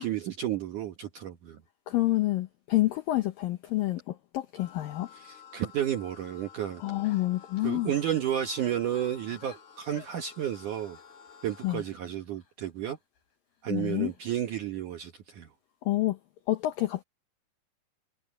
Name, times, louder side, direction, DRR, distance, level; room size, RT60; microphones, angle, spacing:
voice 1, 0.0-1.6 5.1-6.8 7.6-11.0 11.4-13.0 13.6-15.5, right 10 dB, 70° right, 2.0 m, -32 dB
voice 2, 1.9-5.1 6.8-7.9 11.6-11.8 13.7-14.1 15.8-16.2 16.5-17.0, left 16 dB, 80° left, 2.1 m, -28 dB
sound 1, 4.6-11.8, left 8 dB, 40° left, 4.4 m, -52 dB
sound 2, 6.2-6.5 7.0-12.7 13.2-13.3 13.7-14.6, left 5 dB, 55° left, 7.8 m, -58 dB
omnidirectional pair, 5.3 m